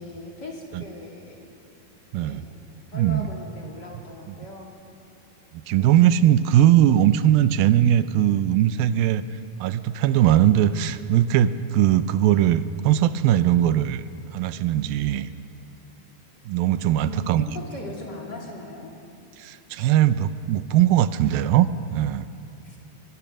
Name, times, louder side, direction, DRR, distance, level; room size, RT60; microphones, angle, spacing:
voice 1, 0.0-1.5 2.1-2.5 2.9-4.7 5.8-6.0 16.8-19.0 20.1-20.3 22.6-22.8, left 2 dB, 30° left, -2 dB, 2.8 m, -39 dB
voice 2, 2.9-3.3 4.3-4.4 5.5-9.2 9.6-14.0 14.3-15.3 16.5-17.4 19.4-22.3, right 11 dB, 80° right, 13 dB, 2.4 m, -20 dB
24.0 x 22.0 x 6.2 m, 2.8 s
omnidirectional pair, 4.4 m